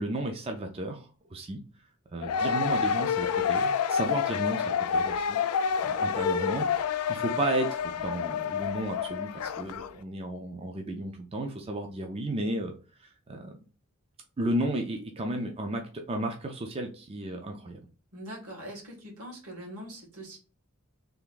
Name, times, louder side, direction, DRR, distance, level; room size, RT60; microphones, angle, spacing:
voice 1, 0.0-1.6 2.1-5.4 5.8-6.7 7.1-12.7 13.3-13.5 14.4-17.8, right 1 dB, 25° right, 4 dB, 0.4 m, -33 dB
sound 1, 2.2-9.9, left 6 dB, 80° left, 0.3 m, -28 dB
voice 2, 18.1-20.4, equal, 80° right, -1 dB, 1.8 m, -42 dB
3.4 x 2.5 x 3.8 m, 0.36 s
head